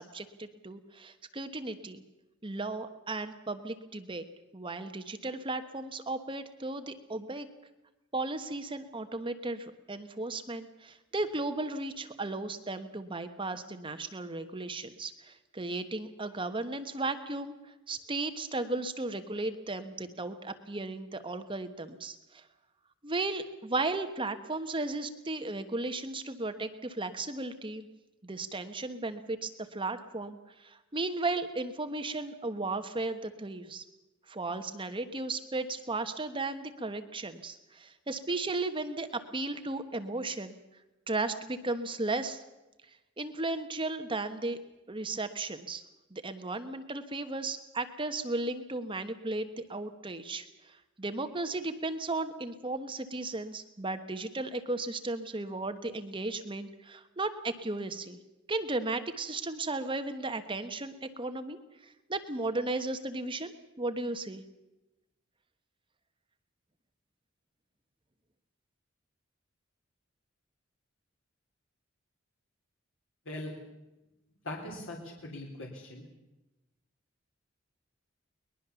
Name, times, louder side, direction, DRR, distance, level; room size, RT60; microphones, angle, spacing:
voice 1, 0.0-2.0 2.4-4.2 4.5-7.5 8.1-17.6 17.9-22.4 23.0-27.9 28.2-33.8 34.3-40.6 41.1-42.4 43.2-44.6 44.9-45.8 46.1-58.2 58.5-61.6 62.1-63.5 63.8-64.4, right 2 dB, 25° right, 8 dB, 1.2 m, -35 dB
voice 2, 74.4-76.0, left 1 dB, 70° left, 0 dB, 3.6 m, -40 dB
22.0 x 21.0 x 7.0 m, 1.0 s
head